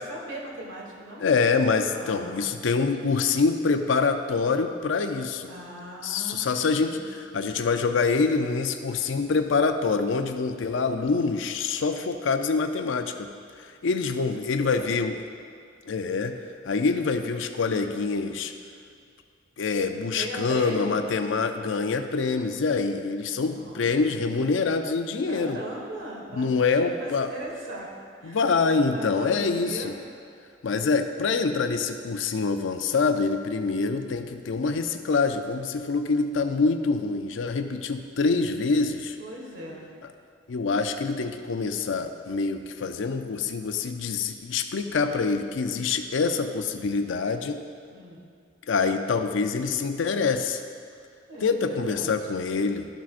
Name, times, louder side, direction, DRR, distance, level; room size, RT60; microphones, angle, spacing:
voice 1, 0.1-1.2 1.9-2.5 5.4-7.0 13.9-14.3 14.6-15.0 20.0-21.0 23.4-24.2 25.3-27.9 28.2-28.4 28.9-30.0 39.2-39.9 47.9-48.2 51.3-52.4, right 1 dB, 85° right, -2 dB, 1.6 m, -39 dB
voice 2, 1.2-5.5 6.0-13.3 13.6-15.2 15.9-18.5 19.6-25.6 26.3-27.3 28.2-30.0 30.6-39.2 40.5-47.7 48.7-50.6 51.4-52.9, left 4 dB, 75° left, 7 dB, 0.5 m, -25 dB
12.5 x 5.9 x 2.5 m, 2.3 s
head